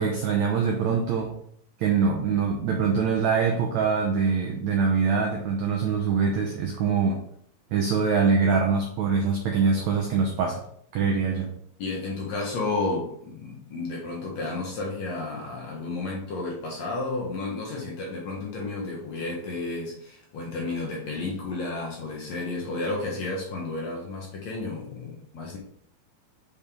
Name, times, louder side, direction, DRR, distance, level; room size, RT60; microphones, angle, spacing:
voice 1, 0.0-1.3 1.8-7.2 7.7-10.6 10.9-11.5, right 5 dB, 85° right, 0 dB, 1.6 m, -24 dB
voice 2, 11.8-25.6, left 3 dB, 60° left, -2 dB, 2.0 m, -32 dB
7.0 x 5.1 x 3.6 m, 0.66 s
omnidirectional pair, 4.4 m